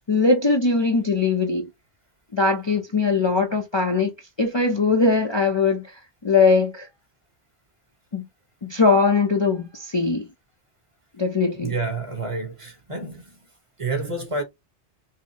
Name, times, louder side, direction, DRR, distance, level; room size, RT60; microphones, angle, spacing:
voice 1, 0.1-1.7 2.3-4.1 4.4-6.9 8.1-8.3 8.6-10.3 11.2-11.7, left 4 dB, 30° left, 0.6 m, -21 dB
voice 2, 11.5-13.4 13.8-14.4, right 3 dB, 30° right, 1.1 m, -29 dB
5.8 x 2.1 x 2.8 m
omnidirectional pair, 1.1 m